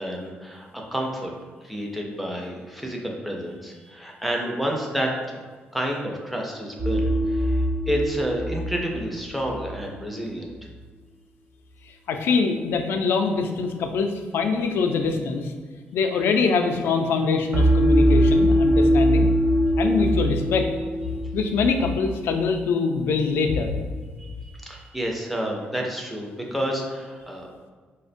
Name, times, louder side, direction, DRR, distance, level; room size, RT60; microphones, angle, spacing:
voice 1, 0.0-1.3 1.6-5.4 5.7-10.5 24.2-27.5, equal, ahead, -1 dB, 0.4 m, -30 dB
sound 1, 6.8-9.9 17.5-21.5, equal, 40° right, 0.7 m, -21 dB
voice 2, 12.1-15.5 15.9-19.3 19.8-20.7 21.3-23.7, left 4 dB, 75° left, 5 dB, 0.4 m, -23 dB
4.9 x 2.1 x 2.5 m, 1.5 s
cardioid pair, 165°, 4 cm